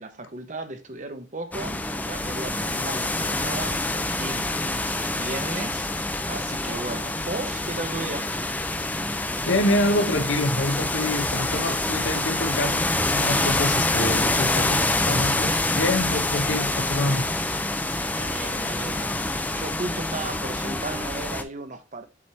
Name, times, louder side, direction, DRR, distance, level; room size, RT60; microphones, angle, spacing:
voice 1, 0.0-5.9 6.3-8.3 18.1-22.0, right 2 dB, 40° right, 0.9 m, -35 dB
sound 1, 1.5-21.4, left 2 dB, 10° left, 0.4 m, -26 dB
voice 2, 9.5-17.2, left 1 dB, 80° left, 0.9 m, -26 dB
7.3 x 3.1 x 4.3 m
head